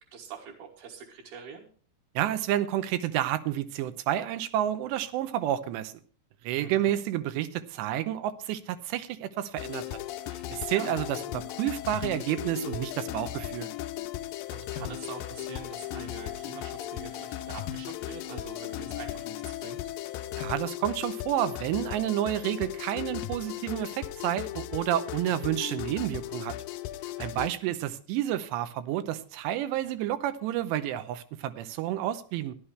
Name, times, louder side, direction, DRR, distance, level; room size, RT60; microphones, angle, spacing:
voice 1, 0.1-1.7 6.6-7.0 10.7-10.9 14.5-19.8 25.4-25.6, right 6 dB, 70° right, 3.3 m, -44 dB
voice 2, 2.2-6.0 6.4-10.0 10.5-11.1 11.3-13.7 20.4-26.5 27.2-32.6, right 12 dB, 90° right, 3.1 m, -30 dB
sound 1, 9.6-27.5, left 14 dB, 80° left, 2.1 m, -37 dB
14.5 x 11.5 x 3.3 m
omnidirectional pair, 4.9 m